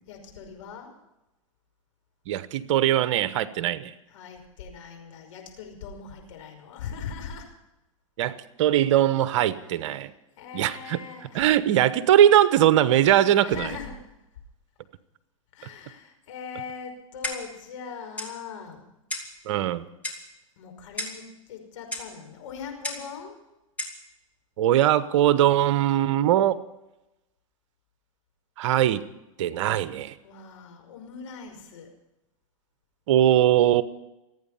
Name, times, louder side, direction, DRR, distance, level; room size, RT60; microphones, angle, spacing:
voice 1, 0.1-0.9 4.1-7.5 9.3-9.4 10.0-10.1 10.4-11.5 13.3-14.0 15.5-18.9 20.6-23.4 30.2-31.9, left 6 dB, 65° left, 3 dB, 5.6 m, -40 dB
voice 2, 2.3-3.9 8.2-10.1 10.5-11.0 11.3-13.7 19.4-19.8 24.6-26.6 28.6-29.0 29.4-30.1 33.1-33.8, right 11 dB, 60° right, 14 dB, 1.1 m, -21 dB
Clock, 17.2-17.6 18.2-18.4 19.1-19.4 20.0-20.3 21.0-21.2 21.9-22.1 22.8-23.1 23.8-24.0, left 1 dB, 10° left, 3.7 m, -33 dB
27.0 x 9.5 x 5.6 m, 0.93 s
hypercardioid pair, 105°, 17 cm